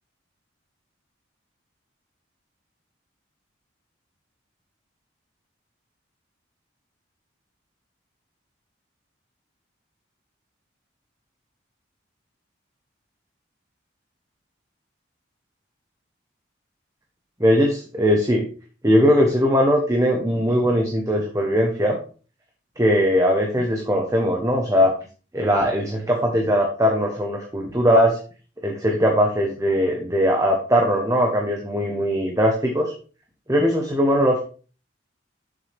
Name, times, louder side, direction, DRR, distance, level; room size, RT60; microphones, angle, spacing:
voice 1, 17.4-18.4 18.8-22.0 22.8-24.9 25.3-28.2 28.6-32.9 33.5-34.4, equal, 15° right, 1 dB, 1.1 m, -20 dB
7.4 x 7.1 x 3.5 m, 0.38 s
head